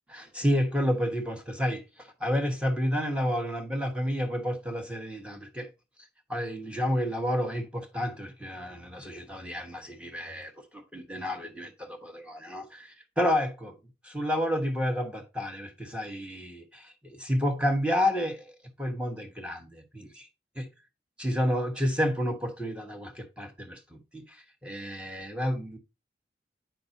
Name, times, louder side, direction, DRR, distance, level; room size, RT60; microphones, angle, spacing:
voice 1, 0.1-5.7 6.3-13.8 14.0-20.3 20.6-20.7 21.2-25.8, equal, 5° right, 1.1 m, -30 dB
9.0 x 5.8 x 2.7 m
head